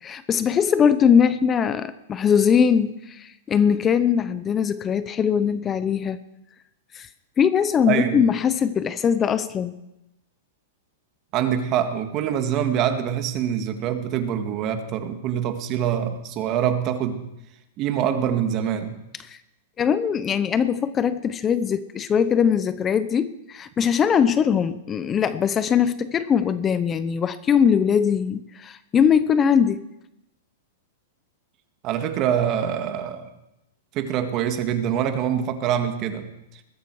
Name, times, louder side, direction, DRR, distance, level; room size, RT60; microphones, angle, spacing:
voice 1, 0.0-6.2 6.9-7.1 7.4-9.7 19.2-19.4 19.8-29.8, left 7 dB, 20° left, 13 dB, 0.8 m, -21 dB
voice 2, 7.9-8.2 11.3-17.2 17.8-19.0 31.8-33.3 33.9-36.3, right 9 dB, 35° right, 7 dB, 2.1 m, -25 dB
20.5 x 14.0 x 4.9 m, 0.87 s
hypercardioid pair, 135°, 0 cm